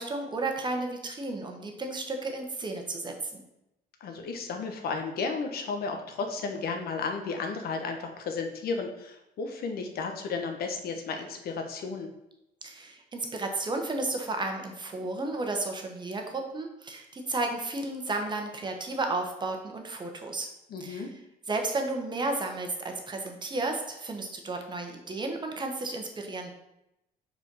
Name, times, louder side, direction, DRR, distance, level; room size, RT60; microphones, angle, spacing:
voice 1, 0.0-3.4 12.6-20.5 20.8-21.1 21.5-26.5, right 2 dB, 25° right, 4 dB, 1.1 m, -33 dB
voice 2, 4.0-12.1 20.7-21.1, left 4 dB, 65° left, 4 dB, 1.1 m, -33 dB
4.9 x 4.5 x 5.4 m, 0.87 s
cardioid pair, 110°, 17 cm